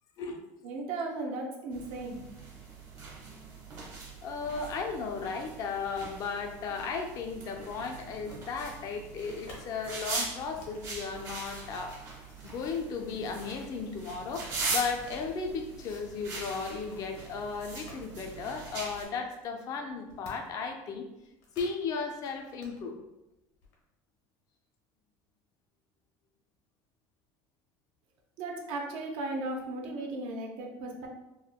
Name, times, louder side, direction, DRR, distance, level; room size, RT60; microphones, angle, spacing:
voice 1, 0.6-2.2 28.4-31.1, right 2 dB, 70° right, 1 dB, 0.6 m, -36 dB
sound 1, 1.7-19.0, right 3 dB, 40° right, 0.9 m, -41 dB
voice 2, 4.2-12.0 12.4-21.1 21.6-23.0, left 5 dB, 45° left, 4 dB, 0.4 m, -35 dB
sound 2, 8.1-9.6 10.2-15.1 15.4-18.1 18.4-18.5 18.9-20.7 20.9-21.8 22.1-22.8 23.6-23.7, left 2 dB, 80° left, 0.9 m, -55 dB
3.5 x 2.1 x 2.2 m, 0.96 s
cardioid pair, 145°, 9 cm